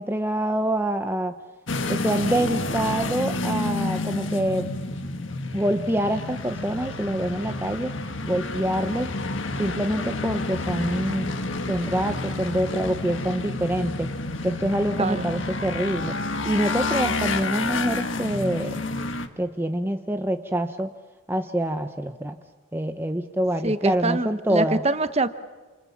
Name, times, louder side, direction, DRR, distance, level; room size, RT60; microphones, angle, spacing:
voice 1, 0.0-1.4 1.9-4.7 5.5-8.0 8.3-9.1 9.6-14.1 14.4-16.1 16.4-18.8 19.4-20.9 21.3-22.4 22.7-24.8, right 1 dB, 10° right, 7 dB, 0.8 m, -26 dB
sound 1, 1.7-19.3, left 3 dB, 65° left, 1.7 m, -29 dB
voice 2, 23.6-25.3, right 2 dB, 30° right, 11 dB, 1.1 m, -24 dB
29.0 x 28.0 x 7.2 m, 1.3 s
head